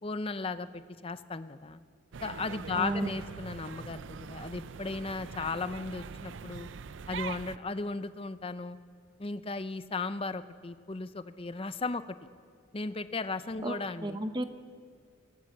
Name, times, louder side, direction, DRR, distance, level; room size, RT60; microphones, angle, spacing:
voice 1, 0.0-1.8 2.2-6.7 7.1-8.8 9.2-12.1 12.7-14.2, left 3 dB, 25° left, 12 dB, 0.6 m, -36 dB
sound 1, 2.1-7.6, right 6 dB, 65° right, 0.5 m, -43 dB
voice 2, 2.7-3.1 13.6-14.4, right 1 dB, 20° right, 9 dB, 0.8 m, -33 dB
21.5 x 17.5 x 7.3 m, 2.2 s
head